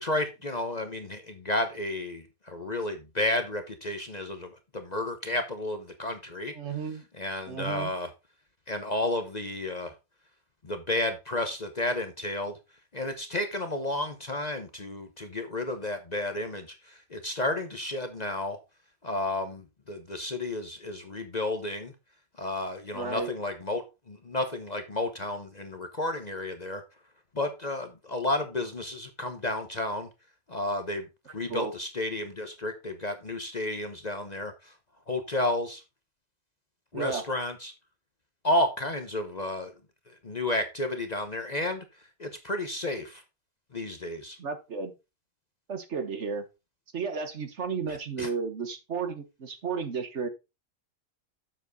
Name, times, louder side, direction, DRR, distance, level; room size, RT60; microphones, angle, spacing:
voice 1, 0.0-6.5 7.2-8.1 8.7-9.9 10.6-12.5 12.9-18.6 19.0-21.9 22.4-26.8 27.3-30.1 30.5-31.1 31.3-34.7 35.1-35.8 36.9-37.7 38.4-39.7 40.1-41.8 42.2-43.2 43.7-44.4 47.9-48.3, left 1 dB, 35° left, 7 dB, 0.9 m, -32 dB
voice 2, 6.5-7.0 7.5-7.9 22.9-23.3 31.5-31.7 36.9-37.2 44.4-44.9 45.7-46.4 46.9-50.3, right 5 dB, 55° right, 9 dB, 1.5 m, -33 dB
7.6 x 7.2 x 4.0 m, 0.26 s
omnidirectional pair, 1.4 m